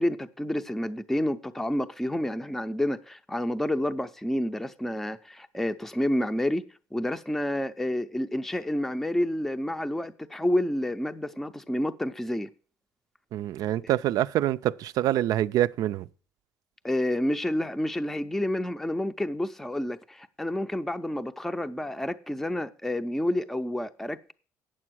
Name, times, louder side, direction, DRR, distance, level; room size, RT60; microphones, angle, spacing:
voice 1, 0.0-6.6 6.9-12.5 16.8-24.3, left 1 dB, 5° left, 0.5 m, -29 dB
voice 2, 13.3-16.1, right 13 dB, 70° right, 0.4 m, -26 dB
8.7 x 7.6 x 6.1 m
cardioid pair, 130°, 6 cm